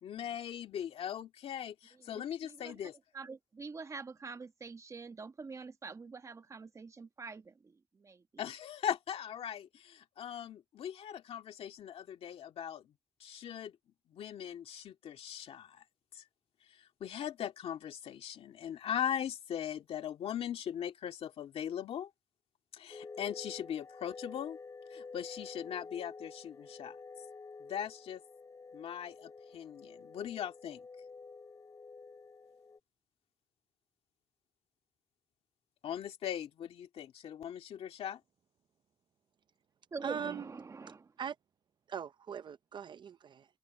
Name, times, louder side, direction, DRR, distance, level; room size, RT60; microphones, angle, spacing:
voice 1, 0.0-3.0 8.4-12.9 13.2-13.7 14.1-15.8 16.1-16.2 16.7-22.1 22.7-24.6 24.9-27.0 27.6-28.2 28.7-30.9 35.8-38.2, left 9 dB, 75° left, 2.0 m, -40 dB
voice 2, 2.4-2.7 3.1-7.7 8.0-8.2 39.9-41.1, right 4 dB, 30° right, 1.3 m, -45 dB
sound 1, 22.9-32.8, left 4 dB, 30° left, 5.0 m, -50 dB
voice 3, 40.0-40.5 41.2-41.3 41.9-43.5, right 7 dB, 50° right, 0.6 m, -40 dB
cardioid pair, 125°, 10 cm